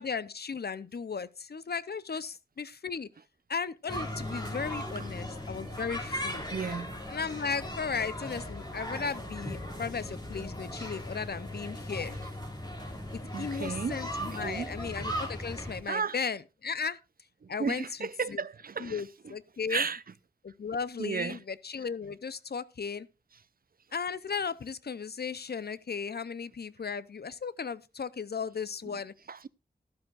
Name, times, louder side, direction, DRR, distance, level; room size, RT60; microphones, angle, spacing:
voice 1, 0.0-3.1 3.5-6.5 7.1-12.2 13.4-17.0 17.5-18.4 18.8-19.9 20.4-23.1 23.9-29.1, left 5 dB, 70° left, 0.6 m, -36 dB
sound 1, 3.9-15.8, equal, 25° left, 3.2 m, -38 dB
voice 2, 6.5-7.0 13.3-14.7 15.9-16.2 17.4-19.0 19.7-20.0 21.0-21.4 29.3-29.5, right 5 dB, 60° right, 0.5 m, -34 dB
12.0 x 12.0 x 2.4 m
wide cardioid pair, 60°, 17 cm